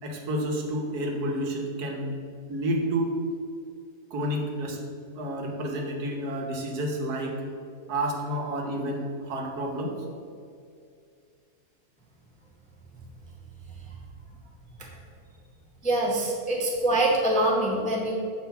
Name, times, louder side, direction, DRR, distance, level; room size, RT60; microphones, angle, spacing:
voice 1, 0.0-2.1 2.5-3.1 4.1-4.8 5.1-7.4 7.9-10.0, right 1 dB, 80° right, 0 dB, 1.5 m, -30 dB
voice 2, 15.8-18.1, right 1 dB, 10° left, -2 dB, 0.5 m, -24 dB
7.3 x 3.1 x 5.6 m, 2.4 s
omnidirectional pair, 1.7 m